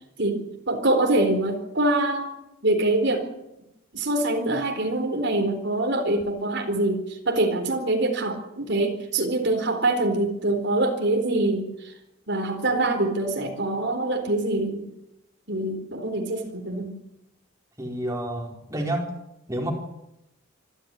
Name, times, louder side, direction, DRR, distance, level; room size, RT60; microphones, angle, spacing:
voice 1, 0.2-2.3 2.6-3.2 3.9-11.9 12.3-14.8 15.5-16.9, right 2 dB, 50° right, 4 dB, 4.1 m, -24 dB
voice 2, 17.8-19.1 19.5-19.7, right 1 dB, 15° right, 0 dB, 4.6 m, -29 dB
27.0 x 13.5 x 9.8 m, 0.88 s
head